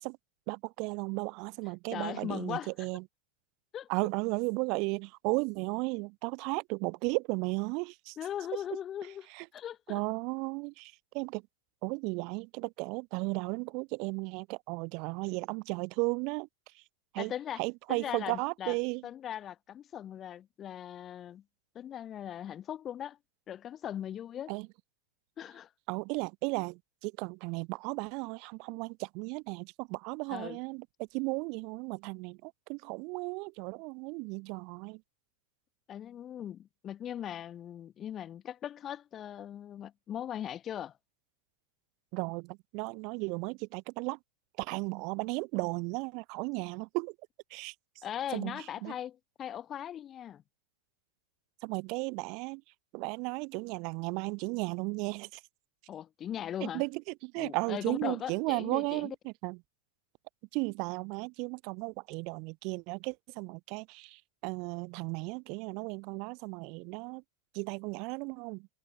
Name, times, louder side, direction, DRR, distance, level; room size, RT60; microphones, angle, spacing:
voice 1, 0.5-3.0 3.9-8.2 9.3-9.5 9.9-11.4 11.8-16.5 16.7-16.8 17.1-17.3 17.6-19.0 24.5-24.7 25.9-35.0 42.1-44.2 44.6-47.1 47.5-48.0 48.3-48.9 51.6-52.6 52.9-55.4 56.6-59.6 60.5-67.2 67.5-68.7, right 30 dB, 45° right, 1.3 m, -35 dB
voice 2, 1.9-2.7 3.7-3.9 8.2-9.3 9.5-10.0 17.2-17.6 17.9-18.8 19.0-21.4 21.8-23.2 23.5-24.5 25.4-25.7 30.3-30.6 35.9-40.9 48.0-50.4 55.9-56.8 57.4-59.2, left 10 dB, 30° left, 1.9 m, -39 dB
figure-of-eight pair, 90°, 0 cm